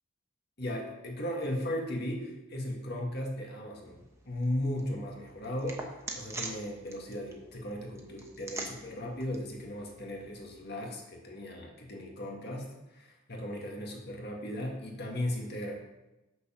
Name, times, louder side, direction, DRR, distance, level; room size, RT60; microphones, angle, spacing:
voice 1, 0.6-5.9 6.1-15.8, left 1 dB, 50° left, 0 dB, 1.8 m, -36 dB
sound 1, 3.8-10.6, right 2 dB, 15° right, 1.0 m, -45 dB
6.9 x 6.6 x 5.8 m, 1.0 s
head